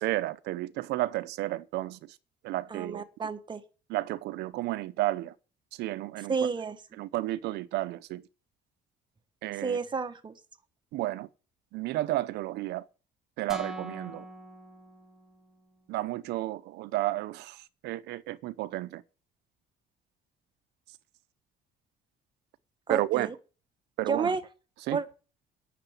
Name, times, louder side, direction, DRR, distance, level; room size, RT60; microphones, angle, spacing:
voice 1, 0.0-2.2 2.4-3.3 3.9-5.3 5.7-6.4 7.0-8.3 9.4-9.8 10.9-11.3 11.7-12.9 13.4-14.2 15.9-19.0 22.9-23.3 24.0-24.4 24.9-25.0, right 16 dB, 85° right, 0.8 m, -32 dB
voice 2, 2.7-3.6 6.3-6.8 9.6-10.3 22.9-23.3 24.1-24.4 24.9-25.0, right 5 dB, 25° right, 1.3 m, -31 dB
sound 1, 13.5-15.6, right 1 dB, ahead, 2.3 m, -42 dB
10.0 x 6.9 x 8.1 m
cardioid pair, 110°, 17 cm